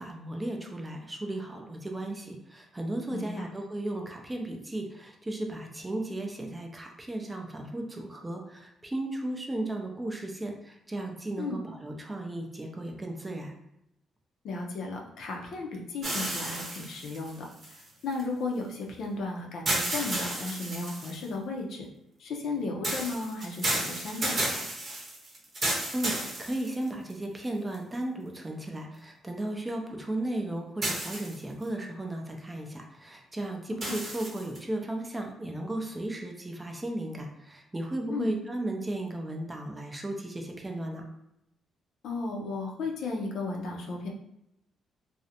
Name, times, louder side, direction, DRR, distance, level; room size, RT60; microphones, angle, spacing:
voice 1, 0.0-13.5 25.9-26.1 26.4-41.1, right 1 dB, 15° right, 2 dB, 0.4 m, -35 dB
voice 2, 3.1-3.5 11.4-11.6 14.4-17.5 18.0-21.9 22.2-24.6 33.9-34.0 38.1-38.3 42.0-44.1, left 3 dB, 70° left, 0 dB, 0.5 m, -34 dB
sound 1, 16.0-18.2 19.7-21.3 22.8-27.1 27.7-27.8 30.8-31.6 33.8-34.6, right 1 dB, 40° right, 0.8 m, -32 dB
2.4 x 2.0 x 2.7 m, 0.80 s
cardioid pair, 90°, 0 cm